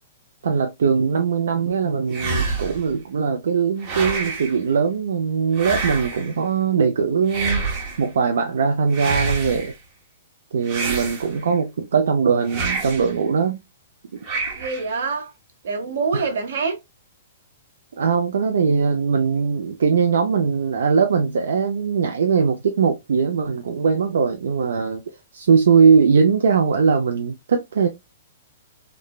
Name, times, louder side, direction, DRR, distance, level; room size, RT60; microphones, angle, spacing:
voice 1, 0.4-7.7 8.0-9.7 10.5-13.6 16.1-16.3 18.0-25.0 25.3-27.9, right 5 dB, 80° right, 0.4 m, -20 dB
sound 1, 2.1-2.9 3.8-4.6 5.5-6.3 7.3-8.1 8.9-9.7 10.7-11.5 12.5-13.1 14.2-14.9, right 3 dB, 25° right, 0.7 m, -27 dB
voice 2, 14.6-15.3 15.6-16.8, right 4 dB, 60° right, 0.8 m, -25 dB
3.1 x 2.0 x 2.2 m
hypercardioid pair, 175°, 0 cm